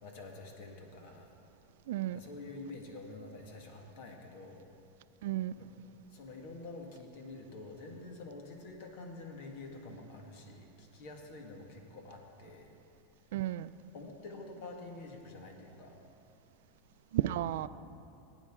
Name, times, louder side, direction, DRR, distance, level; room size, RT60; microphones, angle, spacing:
voice 1, 0.0-1.3 2.1-4.6 5.6-5.7 6.1-12.7 13.9-16.0, left 3 dB, 65° left, 2 dB, 1.8 m, -47 dB
voice 2, 1.9-2.2 5.2-5.5 13.3-13.7 17.1-17.7, right 13 dB, 80° right, 15 dB, 0.3 m, -32 dB
18.0 x 9.0 x 3.7 m, 2.7 s
supercardioid pair, 140°, 0 cm